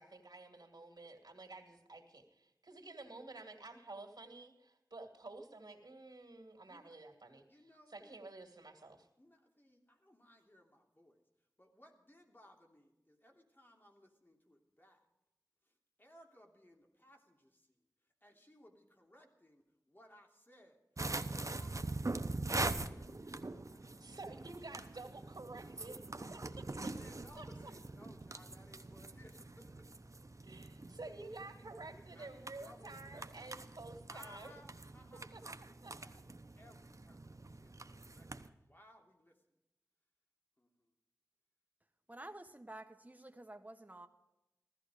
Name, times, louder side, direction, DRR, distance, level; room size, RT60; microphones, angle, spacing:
voice 1, 0.0-7.4 7.9-9.1 24.0-26.0 26.2-26.6 27.4-27.5 30.4-34.5 35.3-35.4 35.8-36.0, right 2 dB, 80° right, 3 dB, 2.3 m, -51 dB
voice 2, 6.5-7.0 7.5-8.2 9.2-15.1 15.6-20.8 21.1-22.0 22.8-24.5 25.2-25.7 26.0-26.2 26.8-30.2 31.2-31.5 32.1-33.7 34.1-35.3 35.8-39.6 40.6-40.9, left 1 dB, 30° left, 2 dB, 3.0 m, -63 dB
sound 1, 21.0-38.5, right 2 dB, 50° right, 0.9 m, -44 dB
voice 3, 42.1-44.1, right 1 dB, 25° right, 6 dB, 1.3 m, -51 dB
16.0 x 13.5 x 5.0 m, 0.92 s
wide cardioid pair, 50°, 7 cm